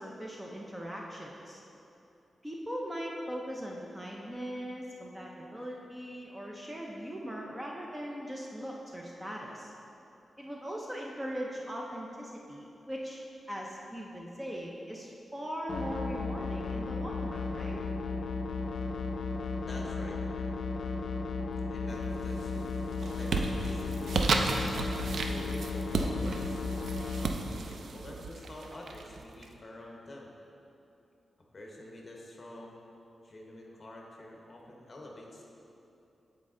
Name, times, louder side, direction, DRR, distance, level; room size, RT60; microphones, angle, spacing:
voice 1, 0.0-1.6 2.4-9.7 10.4-13.2 13.5-17.8, equal, 10° right, -2 dB, 0.5 m, -40 dB
sound 1, 15.7-27.3, left 4 dB, 65° left, 0.4 m, -35 dB
voice 2, 19.7-20.2 21.7-22.7 23.0-24.9 25.2-26.6 27.5-30.3 31.5-32.8 33.2-35.5, left 1 dB, 30° left, -1 dB, 0.9 m, -47 dB
sound 2, 22.0-22.4 22.8-29.4, right 3 dB, 70° right, 0.4 m, -33 dB
8.6 x 4.2 x 3.7 m, 2.8 s
wide cardioid pair, 145°, 0 cm